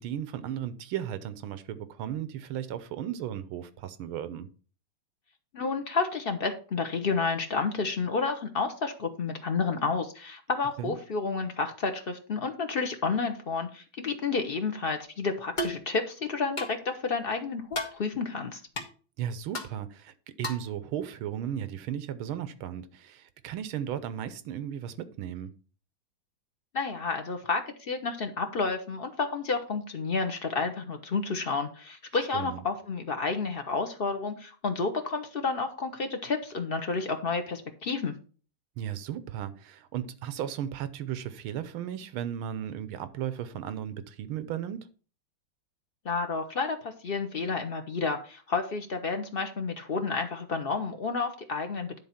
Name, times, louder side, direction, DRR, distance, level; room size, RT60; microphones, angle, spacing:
voice 1, 0.0-4.5 10.8-10.9 19.2-25.5 32.3-32.6 38.8-44.9, right 10 dB, 80° right, 1.6 m, -35 dB
voice 2, 5.5-18.6 26.7-38.1 46.0-52.0, left 4 dB, 75° left, 0.5 m, -30 dB
sound 1, 15.6-15.8 16.6-16.8 17.7-18.0 18.8-18.9 19.5-19.7 20.4-20.7, left 1 dB, 30° left, 1.0 m, -33 dB
10.0 x 4.0 x 5.7 m
omnidirectional pair, 2.3 m